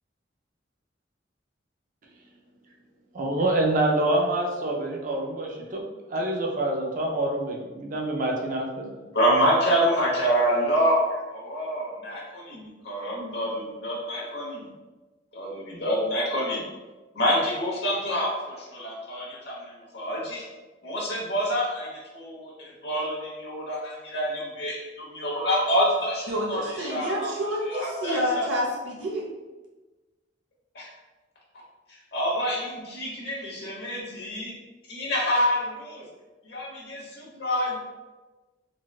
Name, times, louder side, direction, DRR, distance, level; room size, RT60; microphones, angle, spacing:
voice 1, 3.1-9.0, right 1 dB, 45° right, -1 dB, 0.5 m, -26 dB
voice 2, 9.1-14.7 15.3-16.6 17.1-20.5 20.8-27.3 27.7-28.5 30.7-30.9 32.1-34.5 34.9-36.0 36.4-37.8, equal, 60° left, -5 dB, 1.0 m, -27 dB
voice 3, 26.3-29.3, equal, 75° right, -4 dB, 0.9 m, -28 dB
3.9 x 2.3 x 2.3 m, 1.2 s
head